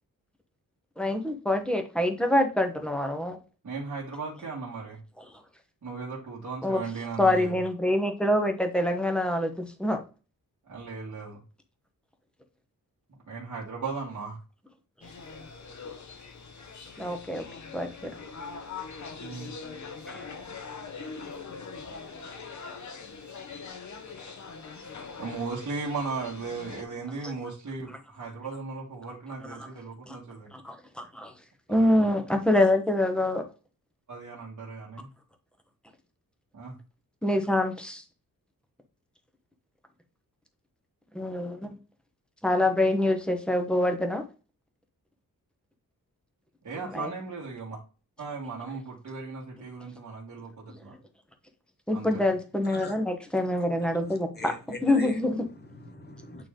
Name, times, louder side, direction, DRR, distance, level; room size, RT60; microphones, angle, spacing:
voice 1, 1.0-3.4 6.6-6.8 7.2-10.0 17.0-17.4 17.7-18.1 20.1-20.2 29.4-29.7 30.1-30.2 30.5-31.3 31.7-33.4 37.2-38.0 41.1-41.7 42.4-44.2 46.9-47.1 51.9-54.5 54.8-55.4, left 1 dB, 5° left, 1.0 m, -25 dB
voice 2, 3.6-5.0 5.8-7.6 10.7-11.4 13.3-14.4 19.2-19.5 25.2-30.5 31.7-32.1 34.1-35.1 36.5-36.8 46.6-47.8 48.2-51.0 51.9-52.3, right 4 dB, 55° right, 1.9 m, -37 dB
sound 1, 15.0-26.8, left 5 dB, 55° left, 1.0 m, -42 dB
voice 3, 52.6-53.0 53.8-56.5, left 1 dB, 30° left, 1.3 m, -42 dB
8.8 x 3.3 x 3.8 m
wide cardioid pair, 160°, 35 cm